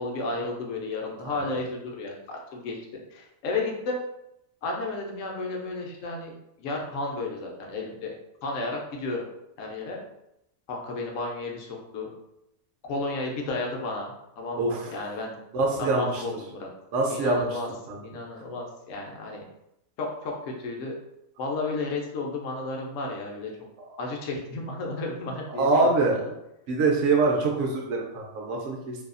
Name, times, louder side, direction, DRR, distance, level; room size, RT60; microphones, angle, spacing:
voice 1, 0.0-4.0 4.6-8.1 8.4-9.2 9.6-10.0 10.7-12.1 12.8-15.4 15.8-16.7 17.1-17.7 18.0-19.4 20.0-20.9 21.4-23.5 24.0-26.3, left 3 dB, 70° left, 0 dB, 0.9 m, -33 dB
voice 2, 14.6-14.9 15.5-16.2 16.9-17.5 17.9-18.0 25.5-26.2 26.7-29.0, right 3 dB, 65° right, 0 dB, 0.9 m, -24 dB
2.7 x 2.3 x 2.4 m, 0.83 s
omnidirectional pair, 1.5 m